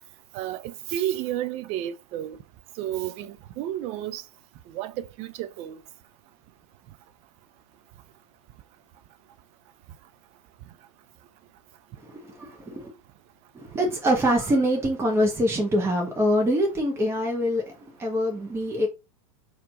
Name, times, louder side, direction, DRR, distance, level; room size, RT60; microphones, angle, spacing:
voice 1, 0.3-2.4 2.8-4.2 4.7-5.8 15.8-15.9, right 12 dB, 40° right, 0.6 m, -31 dB
voice 2, 12.0-12.9 13.5-18.9, equal, 15° right, 1.5 m, -24 dB
4.4 x 3.0 x 3.8 m
figure-of-eight pair, 90°, 17 cm